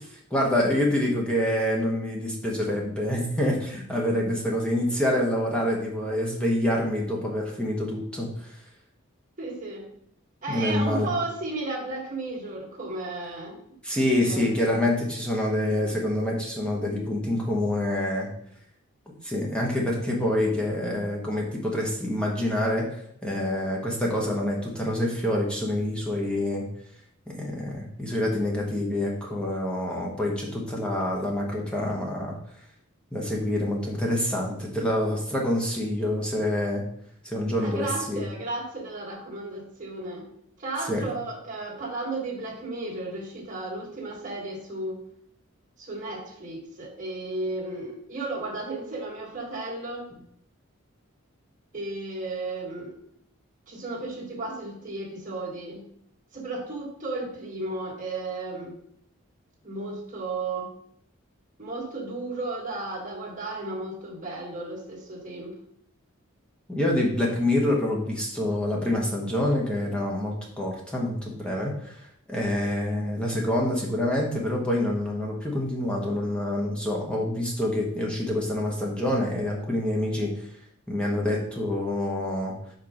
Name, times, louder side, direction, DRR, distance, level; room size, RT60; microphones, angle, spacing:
voice 1, 0.3-8.5 10.5-11.1 13.8-18.3 19.2-22.9 23.2-26.6 27.3-32.4 33.1-36.8 37.2-38.2 40.9-41.0 66.7-80.3 80.9-82.5, left 1 dB, 5° left, -3 dB, 1.2 m, -26 dB
voice 2, 9.4-9.9 10.4-13.6 14.1-14.5 37.6-40.3 40.6-45.0 45.8-50.1 51.7-53.0 53.7-55.8 56.3-58.7 59.6-60.7 61.6-65.6, right 2 dB, 40° right, -3 dB, 1.7 m, -34 dB
4.6 x 4.5 x 5.0 m, 0.69 s
head